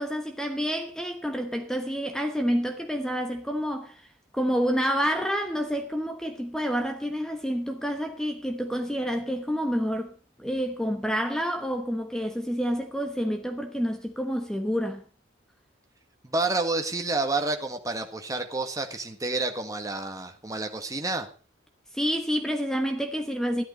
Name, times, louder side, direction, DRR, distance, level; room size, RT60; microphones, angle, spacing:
voice 1, 0.0-4.0 4.3-10.1 10.4-15.0 21.9-23.6, equal, 5° left, 1.1 m, -28 dB
voice 2, 16.2-21.3, right 3 dB, 20° right, 1.7 m, -29 dB
13.0 x 11.5 x 5.3 m
head